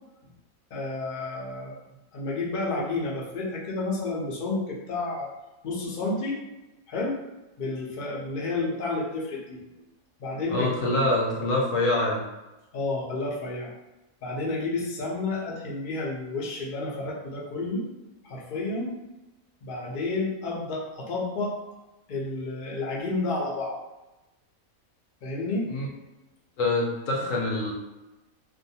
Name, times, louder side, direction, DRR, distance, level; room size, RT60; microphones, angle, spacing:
voice 1, 0.7-1.7 2.1-5.3 5.6-6.4 6.9-7.2 7.6-9.6 10.2-11.0 12.7-13.7 14.2-17.8 18.2-18.9 19.6-21.5 22.1-23.8 25.2-25.7, left 2 dB, 50° left, -4 dB, 0.6 m, -30 dB
voice 2, 10.5-12.2 25.7-25.9 26.6-27.7, left 2 dB, 70° left, -2 dB, 0.9 m, -25 dB
2.6 x 2.2 x 2.7 m, 1.0 s
omnidirectional pair, 1.5 m